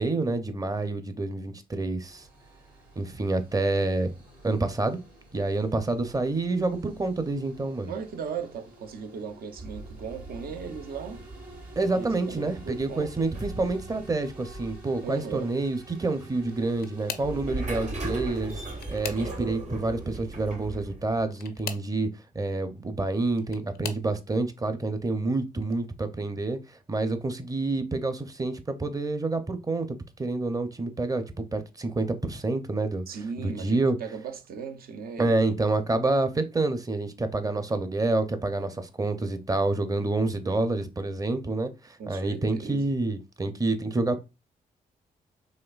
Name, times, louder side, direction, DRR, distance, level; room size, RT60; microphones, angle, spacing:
voice 1, 0.0-2.3 3.0-4.1 4.4-5.0 5.3-7.9 11.8-22.1 22.3-26.6 26.9-29.9 30.2-33.0 33.4-34.0 35.2-44.2, right 2 dB, 20° right, 0.6 m, -28 dB
sound 1, 2.0-19.4, right 1 dB, 85° right, 2.0 m, -51 dB
voice 2, 7.9-11.2 11.9-13.3 15.0-15.5 33.1-35.7 42.0-42.9, right 6 dB, 65° right, 0.6 m, -37 dB
sound 2, 9.6-21.2, right 2 dB, 45° right, 1.0 m, -39 dB
sound 3, 16.4-17.4 18.4-19.6 21.2-21.9 23.0-24.1 24.8-25.2 25.6-25.8 27.1-27.2, left 8 dB, 70° left, 0.5 m, -40 dB
4.3 x 2.7 x 2.4 m
cardioid pair, 60°, 16 cm